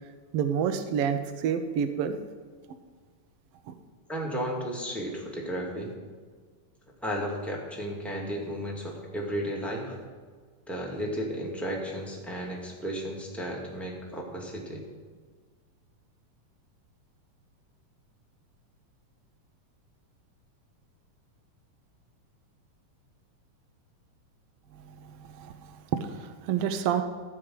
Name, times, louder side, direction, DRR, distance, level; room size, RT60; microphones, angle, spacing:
voice 1, 0.3-2.2 3.7-3.8 24.7-27.0, right 8 dB, 75° right, 9 dB, 1.4 m, -29 dB
voice 2, 4.1-5.9 7.0-10.0 10.7-14.8, equal, ahead, -3 dB, 1.2 m, -34 dB
14.0 x 5.0 x 7.7 m, 1.6 s
omnidirectional pair, 3.6 m